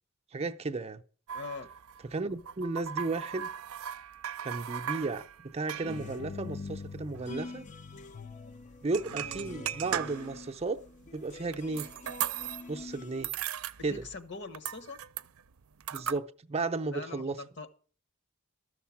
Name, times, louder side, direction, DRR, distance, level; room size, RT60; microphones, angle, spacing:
voice 1, 0.3-1.0 2.1-3.5 4.4-7.6 8.8-10.8 11.1-11.9 12.7-13.3 13.8-14.0 15.9-17.4, right 3 dB, 30° right, 0.6 m, -34 dB
voice 2, 1.3-1.7 13.9-15.0 16.9-17.7, left 4 dB, 60° left, 1.3 m, -42 dB
sound 1, 1.3-7.3 7.6-7.7 7.9-8.1 8.8-10.5 11.0-12.8 13.1-14.3 14.5-16.2, right 9 dB, 85° right, 0.5 m, -38 dB
sound 2, 5.8-13.3, left 3 dB, 35° left, 0.5 m, -44 dB
13.5 x 6.6 x 7.2 m
head